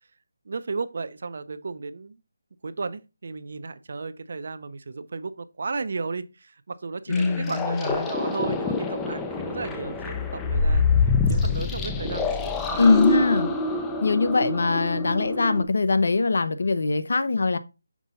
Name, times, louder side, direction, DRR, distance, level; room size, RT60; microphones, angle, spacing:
voice 1, 0.5-2.2 2.6-10.9 11.3-12.8 13.7-13.8, right 4 dB, 50° right, 0.5 m, -34 dB
voice 2, 7.1-8.1 12.8-13.5 14.0-17.6, left 3 dB, 60° left, 0.7 m, -22 dB
sound 1, 7.1-15.6, left 4 dB, 5° left, 0.4 m, -26 dB
6.1 x 4.0 x 3.8 m
figure-of-eight pair, 175°, 0 cm